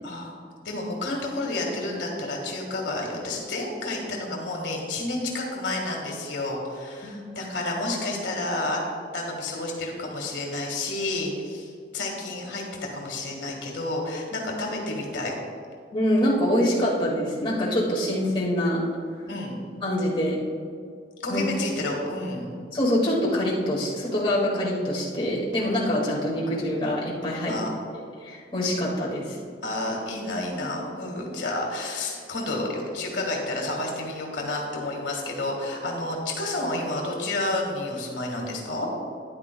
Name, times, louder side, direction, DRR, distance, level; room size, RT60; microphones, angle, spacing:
voice 1, 0.0-0.4 0.6-8.8 9.1-12.6 12.9-15.3 19.3-19.6 21.2-22.5 27.5-27.7 29.6-38.9, left 2 dB, 80° left, 0 dB, 1.7 m, -30 dB
voice 2, 15.9-18.8 19.8-20.4 21.3-21.4 22.7-27.6 28.2-29.4, equal, 30° left, -5 dB, 1.9 m, -25 dB
13.0 x 10.0 x 2.2 m, 2.2 s
head